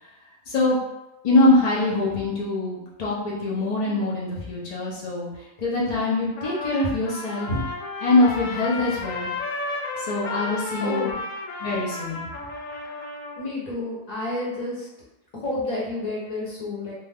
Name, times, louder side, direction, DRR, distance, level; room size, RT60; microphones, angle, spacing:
voice 1, 0.5-0.8 1.2-7.6 8.0-9.3 10.0-11.1 11.6-12.2, left 2 dB, 70° left, -6 dB, 0.3 m, -23 dB
Trumpet, 6.4-13.5, left 3 dB, 90° left, 1.1 m, -33 dB
voice 2, 10.8-11.2 13.3-14.9 15.3-16.9, left 2 dB, 35° left, -6 dB, 0.8 m, -30 dB
2.6 x 2.3 x 3.3 m, 0.94 s
omnidirectional pair, 1.5 m